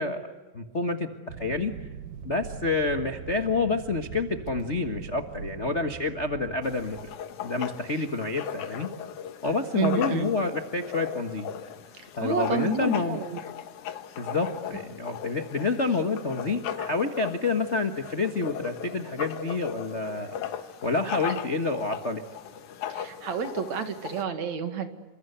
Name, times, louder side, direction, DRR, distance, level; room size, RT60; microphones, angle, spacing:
voice 1, 0.0-1.7 2.2-7.1 7.4-8.9 9.4-11.5 12.1-13.2 14.2-20.3 20.8-22.2, left 3 dB, 40° left, 5 dB, 1.0 m, -28 dB
sound 1, 1.3-7.2, right 7 dB, 85° right, 3.0 m, -42 dB
Writing, 6.6-24.2, left 9 dB, 75° left, 2.8 m, -38 dB
voice 2, 9.8-10.3 12.2-13.4 22.9-24.9, right 6 dB, 65° right, 8 dB, 3.1 m, -29 dB
28.5 x 26.0 x 8.1 m, 1.2 s
omnidirectional pair, 3.6 m